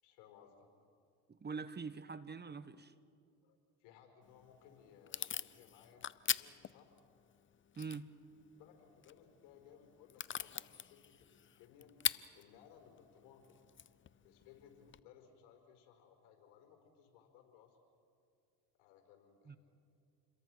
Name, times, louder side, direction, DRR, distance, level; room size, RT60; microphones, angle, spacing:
voice 1, 0.0-0.7 3.4-6.9 8.6-11.9 12.3-13.6 14.2-17.9 18.8-19.6, left 8 dB, 75° left, 4 dB, 4.8 m, -62 dB
voice 2, 1.3-2.9 7.8-8.1 19.5-19.6, right 5 dB, 25° right, 13 dB, 1.2 m, -44 dB
Packing tape duct tape / Tearing, 4.2-15.0, left 8 dB, 30° left, 0.7 m, -44 dB
29.0 x 22.0 x 6.3 m, 2.3 s
supercardioid pair, 75°, 40 cm